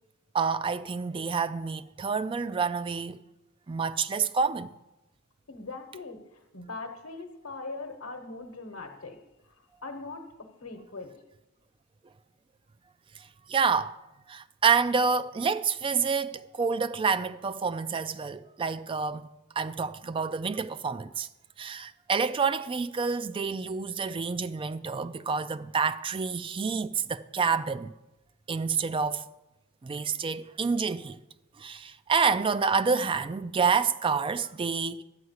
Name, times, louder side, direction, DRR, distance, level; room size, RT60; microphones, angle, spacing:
voice 1, 0.3-3.2 3.7-4.7 13.5-14.0 14.3-19.3 19.6-21.3 21.6-27.9 28.5-29.2 29.8-31.2 31.6-35.0, right 5 dB, 25° right, 0.3 m, -28 dB
voice 2, 5.5-9.2 9.6-11.1, left 3 dB, 85° left, 1.0 m, -41 dB
11.5 x 4.7 x 8.0 m
head